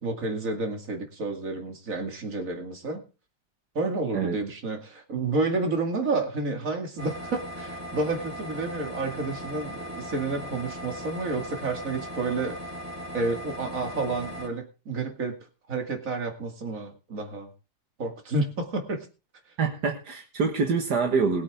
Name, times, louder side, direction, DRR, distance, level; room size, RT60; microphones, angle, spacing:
voice 1, 0.0-3.0 3.7-12.6 13.1-15.4 15.7-17.5 18.0-19.1, right 3 dB, 50° right, 4 dB, 2.7 m, -30 dB
sound 1, 7.0-14.5, equal, 10° right, 2.7 m, -38 dB
voice 2, 19.6-21.4, right 5 dB, 75° right, 3 dB, 2.1 m, -25 dB
21.5 x 8.6 x 3.6 m, 0.33 s
omnidirectional pair, 1.8 m